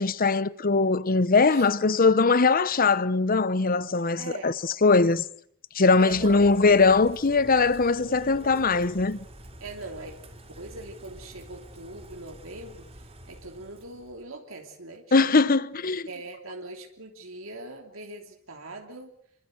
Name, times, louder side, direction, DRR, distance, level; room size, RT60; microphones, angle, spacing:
voice 1, 0.0-4.5 4.8-5.2 5.7-9.2 15.1-16.1, left 4 dB, 45° left, 0.9 m, -21 dB
voice 2, 4.2-4.6 6.0-6.5 8.2-8.4 9.6-10.2 10.5-15.3 16.1-19.2, right 2 dB, 80° right, 3.2 m, -41 dB
Bird / Rain, 6.1-14.2, right 1 dB, 30° right, 4.4 m, -47 dB
27.5 x 24.5 x 6.5 m
head